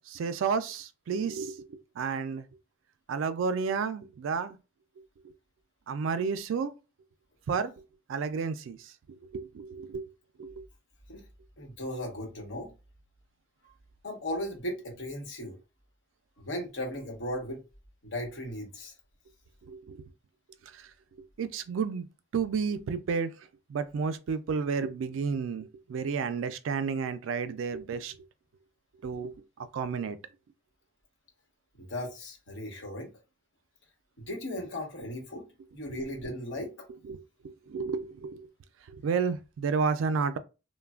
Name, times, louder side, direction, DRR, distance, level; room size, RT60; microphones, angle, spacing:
voice 1, 0.1-2.4 3.1-4.6 5.9-6.7 7.5-7.7 8.1-8.9 9.3-10.1 10.4-10.6 19.7-20.0 20.7-20.9 21.4-22.1 22.3-23.3 23.7-28.2 29.0-29.3 29.7-30.2 36.6-36.7 37.0-38.5 38.9-40.4, right 5 dB, 75° right, 0.3 m, -31 dB
voice 2, 11.6-12.7 14.0-15.6 16.4-17.6 18.0-18.9 31.8-33.1 34.2-35.4 35.7-36.7, left 1 dB, 65° left, 1.1 m, -36 dB
3.1 x 2.1 x 2.3 m
head